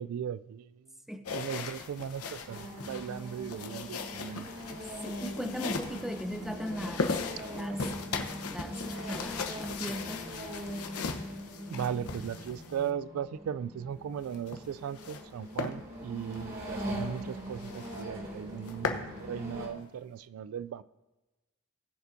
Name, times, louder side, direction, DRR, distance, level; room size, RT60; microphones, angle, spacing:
voice 1, 0.0-0.9 1.3-4.5 11.7-20.8, right 8 dB, 70° right, 0.3 m, -37 dB
sound 1, 1.2-12.9 14.2-15.2 15.6-15.8 16.2-16.4 16.8-16.9 17.2-17.3 17.6-18.0 18.4-19.1, left 4 dB, 80° left, 0.9 m, -38 dB
sound 2, 2.5-19.7, equal, 40° right, 2.5 m, -41 dB
voice 2, 5.0-7.1 7.5-7.8 8.5-10.3, equal, ahead, 0.6 m, -38 dB
19.5 x 6.9 x 2.7 m
head